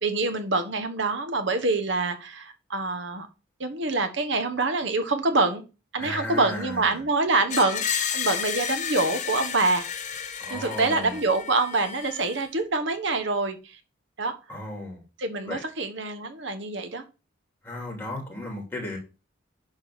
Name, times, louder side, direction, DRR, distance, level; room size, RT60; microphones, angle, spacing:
voice 1, 0.0-3.3 3.6-5.6 5.9-10.1 10.5-13.8 14.2-14.3 15.2-17.0, right 3 dB, 60° right, 1.3 m, -26 dB
voice 2, 6.0-6.8 10.4-11.2 14.5-15.0 15.5-15.6 17.6-19.0, left 1 dB, 10° left, 3.0 m, -34 dB
Screech, 7.5-12.5, left 7 dB, 35° left, 1.0 m, -32 dB
10.5 x 3.9 x 6.4 m
head